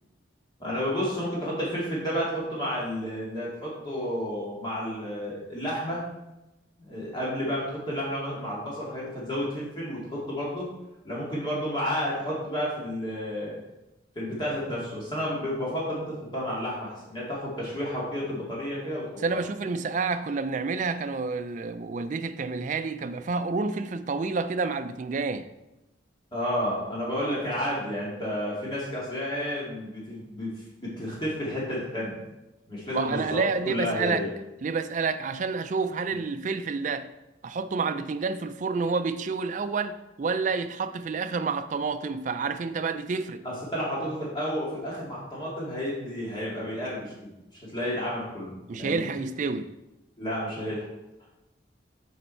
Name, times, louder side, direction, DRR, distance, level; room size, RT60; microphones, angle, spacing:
voice 1, 0.6-6.0 6.8-10.7 11.0-13.6 14.2-19.0 26.3-30.5 30.8-32.2 32.7-34.3 43.4-47.3 47.7-49.1 50.2-50.9, equal, 25° left, 2.1 m, -31 dB
voice 2, 19.2-25.5 32.9-34.3 34.6-37.1 37.4-43.4 48.7-49.7, right 4 dB, 40° right, 0.3 m, -29 dB
6.5 x 5.4 x 4.3 m
head